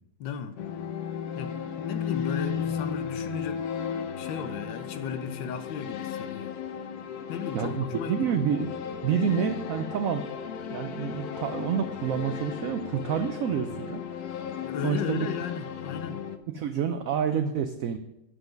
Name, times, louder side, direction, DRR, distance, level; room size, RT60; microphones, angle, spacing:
voice 1, 0.2-0.6 1.3-3.6 4.1-6.5 7.3-8.4 14.6-16.2, left 7 dB, 85° left, 1.4 m, -35 dB
sound 1, 0.6-16.4, left 7 dB, 70° left, 1.1 m, -35 dB
voice 2, 7.5-8.7 9.0-10.3 10.7-14.0 14.8-15.3 16.5-18.0, right 8 dB, 75° right, 0.7 m, -28 dB
8.1 x 5.9 x 5.1 m
omnidirectional pair, 2.0 m